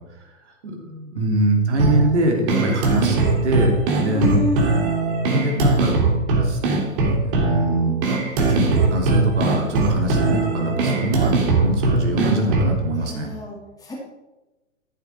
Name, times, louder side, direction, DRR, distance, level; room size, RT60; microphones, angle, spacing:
voice 1, 0.6-3.2 3.4-4.4 4.8-4.9 5.3-5.9 6.4-6.6 6.9-8.0 8.4-13.3, right 1 dB, 60° right, 2 dB, 2.9 m, -23 dB
sound 1, 1.8-12.8, right 3 dB, 40° right, 2.9 m, -20 dB
voice 2, 4.0-4.7 12.9-13.9, left 1 dB, 10° left, -4 dB, 2.7 m, -27 dB
14.0 x 7.6 x 4.5 m, 1.1 s
figure-of-eight pair, 110°, 39 cm